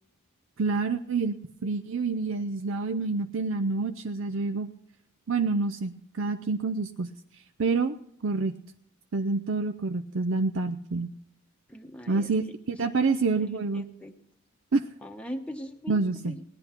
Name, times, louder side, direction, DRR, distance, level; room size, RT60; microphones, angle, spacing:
voice 1, 0.6-1.4 1.6-4.7 5.3-7.1 7.6-8.0 8.2-8.6 9.1-11.1 12.1-13.8 14.7-14.9 15.9-16.4, right 4 dB, 60° right, 8 dB, 0.5 m, -27 dB
voice 2, 11.7-14.1 15.0-16.4, equal, 5° left, 4 dB, 0.9 m, -41 dB
18.0 x 10.5 x 4.4 m, 0.73 s
head